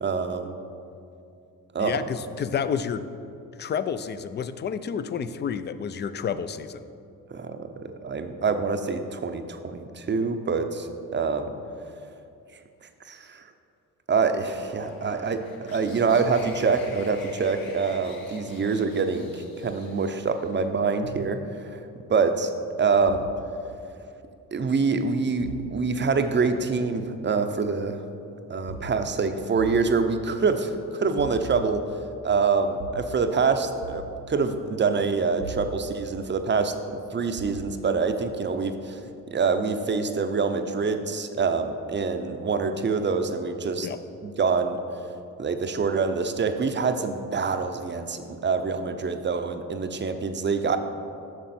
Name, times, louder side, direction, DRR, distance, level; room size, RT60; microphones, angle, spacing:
voice 1, 0.0-0.5 1.7-2.0 7.3-11.5 12.8-13.5 14.1-21.8 22.1-22.5 22.8-23.3 24.5-28.0 28.5-31.8 32.2-36.7 37.1-43.9 44.2-44.8 45.4-50.8, right 4 dB, 30° right, 8 dB, 0.6 m, -26 dB
voice 2, 1.8-3.0 3.6-6.8 43.8-44.0, left 7 dB, 30° left, 13 dB, 0.4 m, -30 dB
sound 1, 14.4-20.6, left 3 dB, 65° left, 1.2 m, -46 dB
sound 2, 21.0-21.3 23.1-23.3 25.4-25.7 28.7-28.9 29.5-29.8 31.2-31.7 32.8-33.0 33.8-34.1 35.4-35.7 37.4-37.6, right 3 dB, 90° right, 0.8 m, -38 dB
7.6 x 6.0 x 4.3 m, 2.6 s
supercardioid pair, 60°, 39 cm